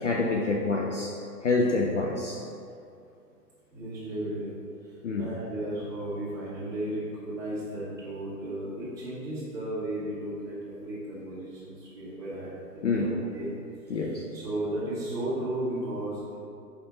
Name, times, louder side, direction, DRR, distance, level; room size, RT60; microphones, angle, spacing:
voice 1, 0.0-2.4 5.0-5.3 12.8-13.1 13.9-14.3, left 3 dB, 50° left, -1 dB, 0.5 m, -27 dB
voice 2, 3.7-4.5 5.2-13.5 14.3-16.4, right 1 dB, 5° right, -13 dB, 1.3 m, -34 dB
5.0 x 5.0 x 3.8 m, 2.5 s
hypercardioid pair, 155°, 50 cm